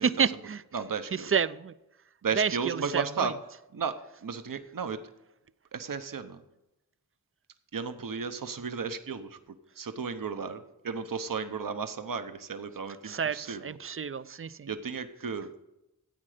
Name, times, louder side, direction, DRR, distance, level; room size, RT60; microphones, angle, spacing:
voice 1, 0.0-0.6 1.3-1.7 2.4-3.3 13.1-14.7, right 6 dB, 35° right, 0.5 m, -29 dB
voice 2, 0.7-1.3 2.2-3.3 3.7-5.0 5.7-6.4 7.7-13.8 14.7-15.5, right 5 dB, 60° right, 0.9 m, -34 dB
14.0 x 8.8 x 5.0 m
wide cardioid pair, 70°, 37 cm